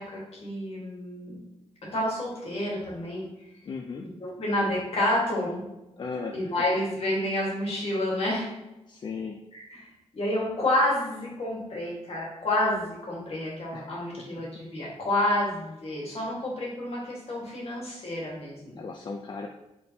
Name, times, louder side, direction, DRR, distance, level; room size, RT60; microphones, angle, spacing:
voice 1, 0.0-1.4 1.8-3.3 4.2-5.6 6.3-8.5 9.5-9.9 10.1-18.8, left 1 dB, 60° left, -4 dB, 1.5 m, -29 dB
voice 2, 3.6-4.1 5.9-6.5 8.9-9.4 13.7-14.2 18.8-19.5, left 4 dB, 40° left, 2 dB, 0.3 m, -37 dB
4.2 x 3.6 x 2.8 m, 0.94 s
wide cardioid pair, 135°, 12 cm